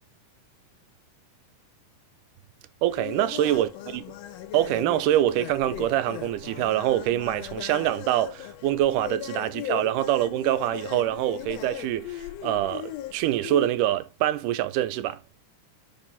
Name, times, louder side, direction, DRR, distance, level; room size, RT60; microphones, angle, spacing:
voice 1, 2.8-4.0 4.5-15.2, right 13 dB, 85° right, 2.2 m, -25 dB
sound 1, 2.9-13.7, left 12 dB, 70° left, 1.6 m, -38 dB
6.2 x 4.8 x 5.5 m
omnidirectional pair, 3.6 m